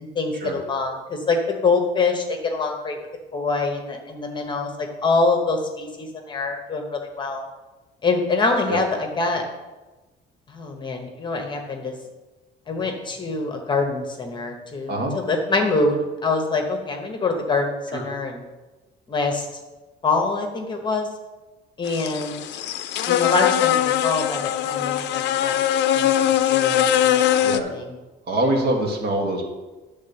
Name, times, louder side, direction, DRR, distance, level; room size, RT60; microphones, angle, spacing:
voice 1, 0.0-3.0 3.3-7.4 8.0-9.4 10.5-11.9 12.7-18.4 19.1-19.5 20.0-21.1 21.8-22.4 23.1-25.5 25.9-27.9, left 3 dB, 25° left, 3 dB, 0.9 m, -25 dB
sound 1, 21.9-27.6, left 11 dB, 65° left, 0.5 m, -21 dB
voice 2, 28.3-29.5, right 1 dB, 60° right, 1 dB, 1.7 m, -24 dB
10.5 x 3.5 x 6.8 m, 1.2 s
cardioid pair, 175°, 20 cm